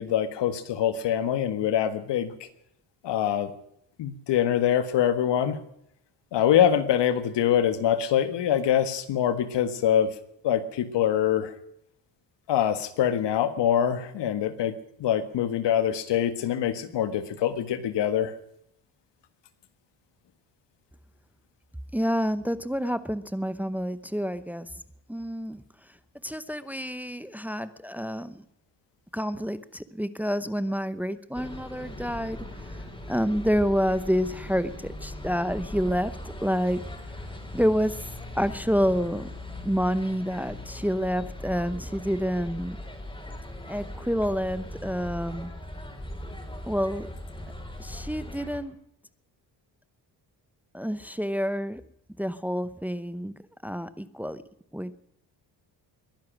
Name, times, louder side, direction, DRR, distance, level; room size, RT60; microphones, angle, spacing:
voice 1, 0.0-2.3 3.0-3.5 4.0-5.6 6.3-10.1 10.4-11.5 12.5-14.7 15.0-18.3, left 10 dB, 80° left, 11 dB, 1.7 m, -24 dB
voice 2, 21.9-24.7 25.1-25.6 26.2-28.4 29.1-36.1 36.4-36.8 37.1-37.2 37.5-38.0 38.3-39.3 39.6-42.8 43.7-45.5 46.6-47.1 47.8-48.7 50.7-51.8 52.2-53.3 53.6-54.4 54.7-55.0, equal, 5° right, 14 dB, 0.8 m, -28 dB
sound 1, 31.3-48.6, left 1 dB, 15° left, 4.8 m, -39 dB
22.0 x 10.5 x 6.2 m, 0.75 s
cardioid pair, 90°, 41 cm